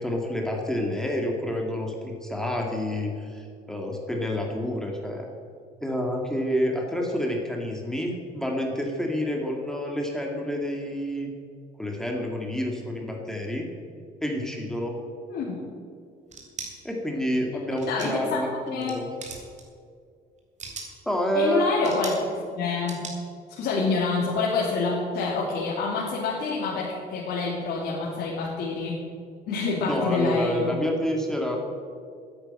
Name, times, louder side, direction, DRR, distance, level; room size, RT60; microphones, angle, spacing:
voice 1, 0.0-5.3 5.8-11.3 11.8-13.7 14.2-15.0 16.8-19.1 21.1-21.7 29.9-31.6, equal, 5° left, 0 dB, 2.2 m, -28 dB
voice 2, 15.3-15.6 17.9-18.4 18.7-19.0 21.3-22.2 22.5-23.1 23.5-29.0 29.5-30.7, left 4 dB, 70° left, -5 dB, 2.7 m, -27 dB
sound 1, 16.3-16.7 17.8-18.3 18.7-18.9 19.2-19.6 20.4-21.0 21.8-22.2 22.9-23.2, right 4 dB, 45° right, 3.1 m, -38 dB
10.5 x 9.6 x 9.0 m, 2.2 s
cardioid pair, 110°, 17 cm